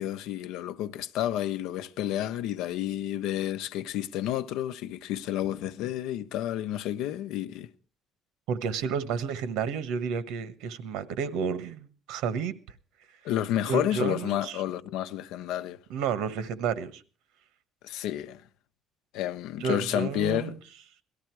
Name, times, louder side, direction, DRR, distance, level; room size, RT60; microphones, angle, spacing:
voice 1, 0.0-7.7 13.2-15.8 17.8-18.4 19.1-20.5, left 12 dB, 75° left, 0.8 m, -30 dB
voice 2, 8.5-12.5 13.2-13.3 13.6-14.6 15.9-17.0 19.6-20.6, right 6 dB, 80° right, 1.3 m, -31 dB
18.5 x 13.0 x 4.6 m
cardioid pair, 170°, 0 cm